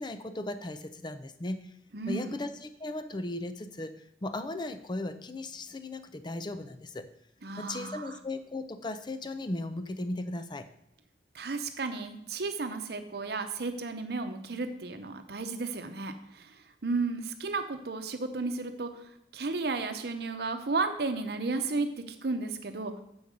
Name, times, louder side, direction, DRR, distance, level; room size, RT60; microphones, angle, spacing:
voice 1, 0.0-1.6 2.1-7.1 7.6-10.7, left 2 dB, 25° left, 10 dB, 0.5 m, -37 dB
voice 2, 1.9-2.4 7.4-8.1 11.3-19.1 19.3-22.9, right 3 dB, 65° right, 7 dB, 0.8 m, -33 dB
7.0 x 5.3 x 6.4 m, 0.79 s
head